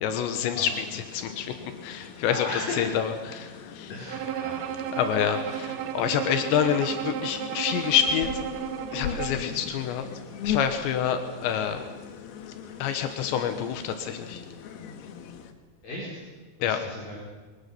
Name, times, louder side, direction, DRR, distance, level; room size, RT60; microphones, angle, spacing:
voice 1, 0.0-1.5 1.8-3.9 5.0-8.3 8.9-10.1 10.4-11.8 12.8-14.4 16.6-16.8, left 8 dB, 85° left, 8 dB, 3.4 m, -27 dB
sound 1, 0.6-15.5, left 8 dB, 70° left, 3.2 m, -39 dB
voice 2, 2.3-2.9 3.9-4.7 9.3-9.4 15.8-16.2 16.6-17.2, left 2 dB, 50° left, -5 dB, 6.3 m, -36 dB
Bowed string instrument, 4.1-9.5, right 10 dB, 85° right, 3.3 m, -33 dB
23.5 x 19.5 x 7.0 m, 1.3 s
omnidirectional pair, 5.0 m